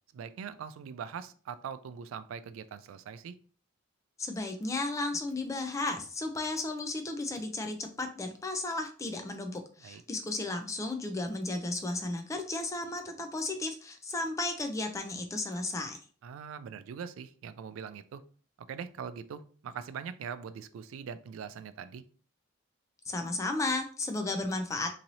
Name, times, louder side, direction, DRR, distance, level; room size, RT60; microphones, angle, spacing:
voice 1, 0.1-3.3 9.8-10.0 16.2-18.2 18.7-22.0, right 7 dB, 80° right, 13 dB, 0.3 m, -42 dB
voice 2, 4.2-16.0 23.1-24.9, left 2 dB, 15° left, 5 dB, 0.3 m, -34 dB
3.0 x 2.6 x 2.7 m, 0.42 s
head